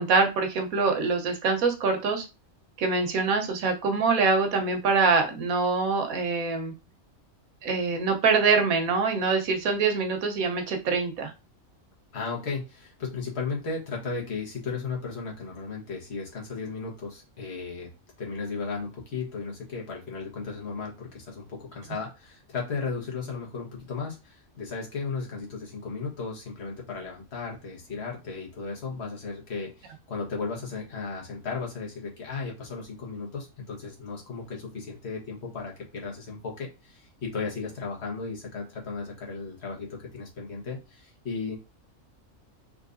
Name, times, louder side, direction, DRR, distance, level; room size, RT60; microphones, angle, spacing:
voice 1, 0.0-2.2 2.8-6.7 7.6-11.3, right 4 dB, 90° right, 5 dB, 1.3 m, -24 dB
voice 2, 12.1-17.9 18.2-41.6, left 4 dB, 50° left, -1 dB, 1.4 m, -35 dB
3.7 x 3.0 x 2.5 m, 0.28 s
omnidirectional pair, 1.4 m